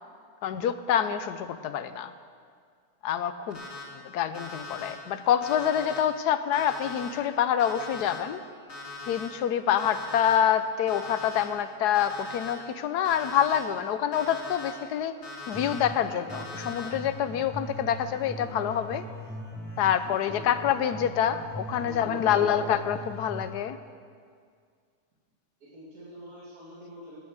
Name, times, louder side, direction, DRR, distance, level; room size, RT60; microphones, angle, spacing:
voice 1, 0.4-2.1 3.0-3.6 3.9-8.4 9.1-15.1 15.5-19.0 19.8-23.8, left 9 dB, 80° left, 12 dB, 1.2 m, -26 dB
Alarm, 3.5-3.8 4.3-4.9 5.4-6.0 6.5-7.1 7.6-8.2 8.7-9.3 9.8-10.4 10.9-11.4 11.9-12.5 13.0-13.6 14.1-14.7 15.2-15.8 16.3-16.9, left 3 dB, 55° left, 2.7 m, -40 dB
sound 1, 15.5-23.5, equal, 5° left, 4.0 m, -40 dB
voice 2, 21.7-22.7 25.6-27.2, equal, 60° right, -8 dB, 2.9 m, -44 dB
17.5 x 8.7 x 6.4 m, 2.1 s
omnidirectional pair, 1.7 m